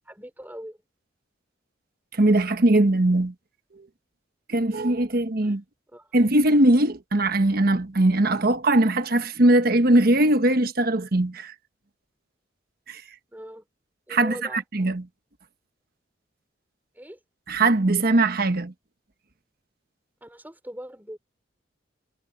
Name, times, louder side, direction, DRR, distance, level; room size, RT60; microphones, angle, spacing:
voice 1, 0.1-0.8 5.4-5.6 5.9-6.2 13.3-13.7 14.1-14.6 16.9-17.2 20.2-21.2, equal, 10° right, 3.9 m, -41 dB
voice 2, 2.1-3.3 4.5-5.6 6.1-11.5 12.9-13.0 14.1-15.0 17.5-18.7, right 1 dB, 55° right, 1.3 m, -20 dB
head